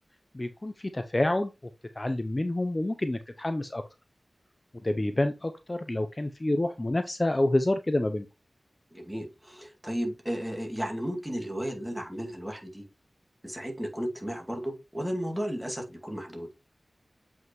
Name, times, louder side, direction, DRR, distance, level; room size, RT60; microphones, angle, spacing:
voice 1, 0.3-1.5 2.0-3.8 4.8-8.3, left 1 dB, 25° left, 0.6 m, -28 dB
voice 2, 8.9-12.8 13.4-16.5, equal, 10° right, 2.2 m, -34 dB
7.8 x 5.4 x 3.0 m
wide cardioid pair, 75°, 0 cm